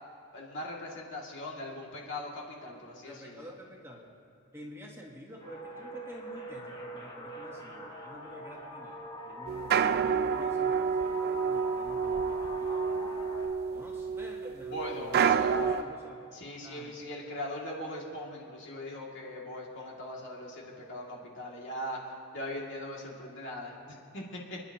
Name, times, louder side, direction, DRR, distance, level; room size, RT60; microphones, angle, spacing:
voice 1, 0.3-3.1 14.7-15.8 16.3-22.0 22.3-24.6, left 1 dB, 60° left, -2 dB, 2.3 m, -40 dB
voice 2, 2.9-4.1 4.5-13.2 13.7-17.0, equal, 10° right, -1 dB, 1.3 m, -49 dB
sound 1, 5.4-13.5, right 1 dB, 20° left, 1.7 m, -43 dB
sound 2, 9.5-15.8, right 6 dB, 45° right, 0.3 m, -29 dB
29.5 x 10.5 x 2.9 m, 2.5 s
head